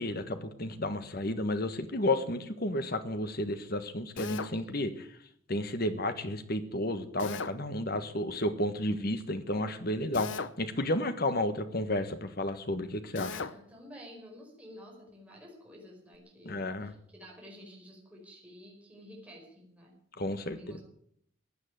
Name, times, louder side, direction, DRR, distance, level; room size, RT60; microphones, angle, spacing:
voice 1, 0.0-5.1 5.5-10.3 10.6-13.4 16.4-16.9 20.2-20.8, left 1 dB, 45° left, 10 dB, 1.5 m, -32 dB
Drill, 4.2-4.6 7.2-7.6 10.1-10.6 13.1-13.6, left 5 dB, 65° left, 0.7 m, -37 dB
voice 2, 13.2-19.9 20.4-20.8, equal, 5° right, -2 dB, 5.1 m, -51 dB
15.5 x 9.5 x 9.3 m, 0.68 s
head